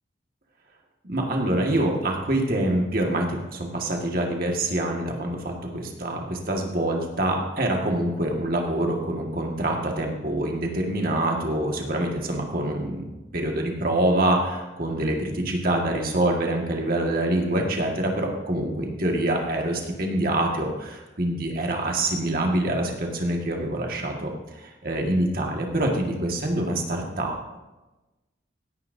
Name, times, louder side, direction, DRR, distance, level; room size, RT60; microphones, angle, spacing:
voice 1, 1.0-27.6, right 1 dB, 50° right, 1 dB, 1.8 m, -25 dB
16.5 x 10.0 x 2.7 m, 1.1 s
head